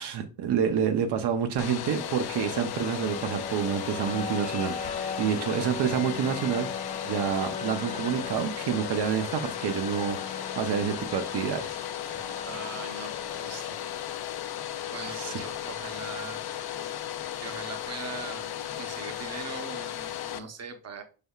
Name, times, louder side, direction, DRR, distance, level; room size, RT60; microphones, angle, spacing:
voice 1, 0.0-6.7 7.0-11.8 15.1-15.4, right 8 dB, 80° right, 7 dB, 0.6 m, -28 dB
Domestic sounds home sounds, 1.6-20.4, left 11 dB, 70° left, 0.5 m, -36 dB
sound 1, 1.9-15.8, left 4 dB, 20° left, 0.4 m, -40 dB
voice 2, 12.4-13.9 14.9-16.4 17.4-21.0, right 5 dB, 40° right, 6 dB, 0.8 m, -41 dB
5.3 x 3.4 x 2.3 m, 0.35 s
wide cardioid pair, 130°, 40 cm